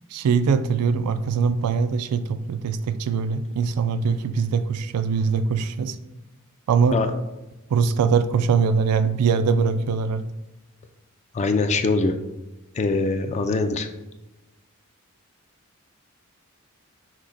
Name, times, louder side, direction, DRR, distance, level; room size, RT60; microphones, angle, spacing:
voice 1, 0.1-6.0 6.7-7.0 7.7-10.3, right 5 dB, 85° right, 12 dB, 0.3 m, -22 dB
voice 2, 11.3-12.1 12.8-13.9, left 3 dB, 30° left, 8 dB, 0.3 m, -22 dB
6.1 x 2.1 x 4.0 m, 1.0 s
head